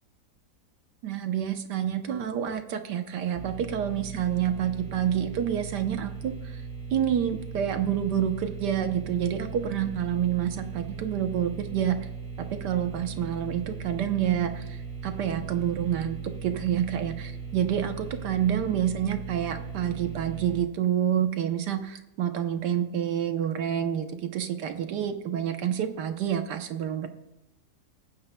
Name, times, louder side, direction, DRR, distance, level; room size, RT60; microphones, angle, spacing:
voice 1, 1.0-6.6 6.9-12.1 12.4-27.1, right 9 dB, 80° right, 7 dB, 1.5 m, -28 dB
sound 1, 3.3-20.6, right 5 dB, 5° left, 3.2 m, -38 dB
19.5 x 9.7 x 2.2 m, 0.94 s
omnidirectional pair, 1.8 m